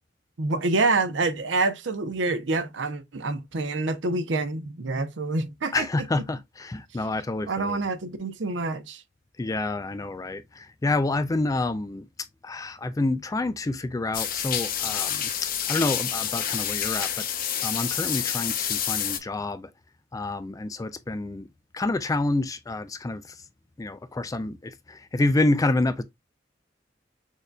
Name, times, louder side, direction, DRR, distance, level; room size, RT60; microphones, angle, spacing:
voice 1, 0.4-6.1 7.5-9.0, right 3 dB, 80° right, 0.7 m, -27 dB
voice 2, 5.7-7.8 9.4-12.1 12.4-19.7 20.1-21.5 21.7-23.4 23.8-26.0, left 2 dB, 20° left, 0.3 m, -28 dB
sound 1, 14.1-19.2, left 9 dB, 50° left, 0.6 m, -28 dB
6.4 x 2.6 x 2.2 m
head